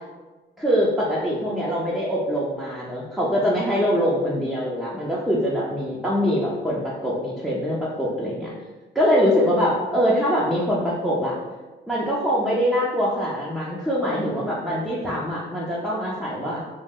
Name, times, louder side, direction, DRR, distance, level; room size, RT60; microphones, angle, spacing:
voice 1, 0.6-8.5 8.9-11.4 11.9-16.6, equal, ahead, -7 dB, 0.5 m, -23 dB
2.4 x 2.0 x 3.5 m, 1.2 s
cardioid pair, 90°, 20 cm